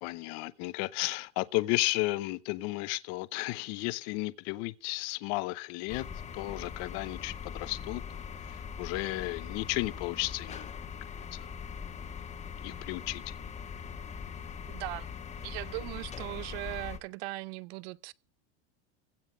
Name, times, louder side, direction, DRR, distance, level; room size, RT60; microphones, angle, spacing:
voice 1, 0.0-6.1 6.3-8.0 8.4-10.7 11.3-11.5 12.6-13.2, left 21 dB, 60° left, 0.7 m, -33 dB
sound 1, 5.9-17.0, left 7 dB, 20° left, 1.3 m, -41 dB
voice 2, 14.7-15.1 15.4-18.1, right 21 dB, 75° right, 0.6 m, -39 dB
16.0 x 5.8 x 7.7 m
supercardioid pair, 140°, 31 cm